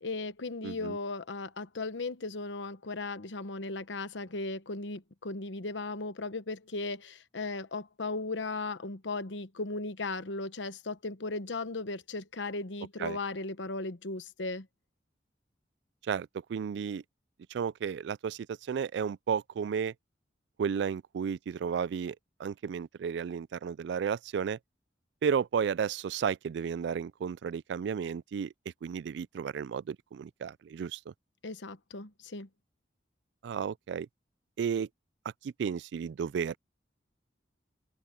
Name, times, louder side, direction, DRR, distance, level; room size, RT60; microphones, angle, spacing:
voice 1, 0.0-14.7 31.4-32.5, left 3 dB, 80° left, 1.1 m, -37 dB
voice 2, 0.6-1.0 13.0-13.2 16.0-17.0 17.5-19.9 20.6-24.6 25.2-28.5 28.8-31.1 33.4-34.1 34.6-34.9 35.4-36.6, right 7 dB, 70° right, 0.3 m, -33 dB
open air
head